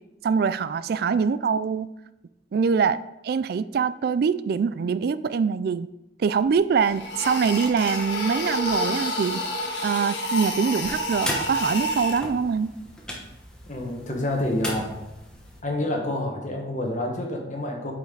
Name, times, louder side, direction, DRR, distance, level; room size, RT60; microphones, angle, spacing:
voice 1, 0.2-1.9 2.5-5.9 6.2-9.4 9.8-12.7, right 6 dB, 55° right, 15 dB, 0.3 m, -24 dB
sound 1, 6.4-6.5 6.9-12.2, left 1 dB, 75° left, 1.5 m, -29 dB
sound 2, 10.8-15.6, equal, 5° left, 1.1 m, -37 dB
voice 2, 13.7-15.0 15.6-17.9, left 1 dB, 40° left, 1 dB, 1.3 m, -28 dB
8.3 x 5.2 x 3.9 m, 0.94 s
head